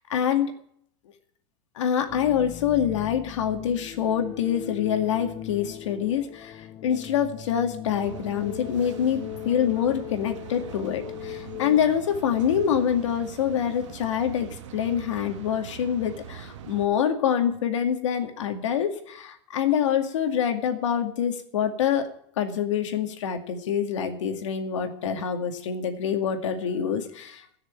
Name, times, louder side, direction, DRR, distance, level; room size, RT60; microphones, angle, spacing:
voice 1, 0.1-0.5 1.8-22.1 22.4-27.6, left 8 dB, 85° left, 6 dB, 2.2 m, -26 dB
sound 1, 2.1-11.8, left 12 dB, 25° left, 0.5 m, -39 dB
sound 2, 7.9-16.9, right 9 dB, 80° right, 1.7 m, -42 dB
16.5 x 6.6 x 8.8 m, 0.66 s
supercardioid pair, 155°, 15 cm